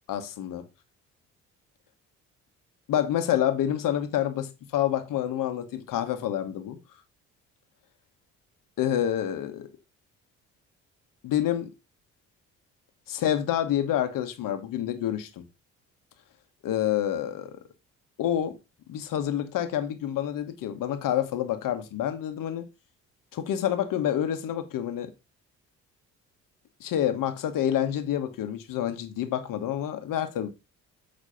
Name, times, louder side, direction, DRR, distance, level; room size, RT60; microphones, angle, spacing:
voice 1, 0.1-0.6 2.9-6.8 8.8-9.7 11.2-11.7 13.1-15.4 16.6-17.6 18.2-18.6 18.9-22.7 23.3-25.1 26.8-30.5, left 11 dB, 70° left, 1.4 m, -28 dB
8.4 x 3.3 x 5.7 m
hypercardioid pair, 55°, 34 cm